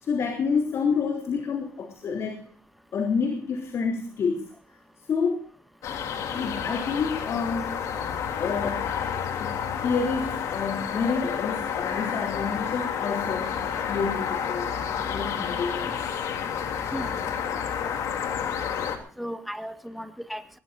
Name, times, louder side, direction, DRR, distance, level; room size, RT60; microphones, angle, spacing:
voice 1, 0.0-2.4 2.9-4.5 5.1-5.4 6.3-7.8 8.4-8.9 9.4-16.1, left 5 dB, 60° left, 3 dB, 3.3 m, -29 dB
sound 1, 5.8-19.0, left 8 dB, 80° left, 3.1 m, -30 dB
voice 2, 16.9-17.4 17.8-17.9 19.2-20.6, equal, ahead, 7 dB, 1.8 m, -36 dB
22.0 x 19.5 x 2.7 m, 0.44 s
cardioid pair, 90°, 5 cm